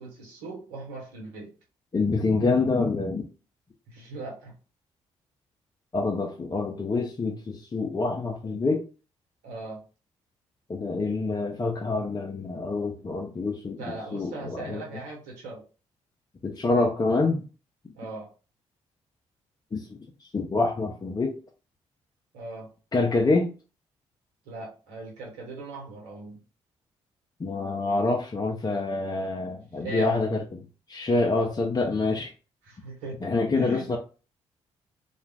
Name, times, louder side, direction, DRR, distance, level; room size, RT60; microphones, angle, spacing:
voice 1, 0.0-1.5 3.9-4.5 9.4-9.8 13.8-15.6 18.0-18.3 22.3-22.7 24.5-26.4 29.8-30.1 32.6-33.2 33.5-33.9, right 2 dB, 75° right, 1.1 m, -39 dB
voice 2, 1.9-3.3 5.9-8.8 10.7-13.8 14.1-14.8 16.4-17.4 19.7-20.0 20.3-21.4 22.9-23.5 27.4-30.6 30.9-32.3 33.2-34.0, left 3 dB, 25° left, 0.6 m, -26 dB
2.3 x 2.3 x 3.3 m
hypercardioid pair, 40°, 15 cm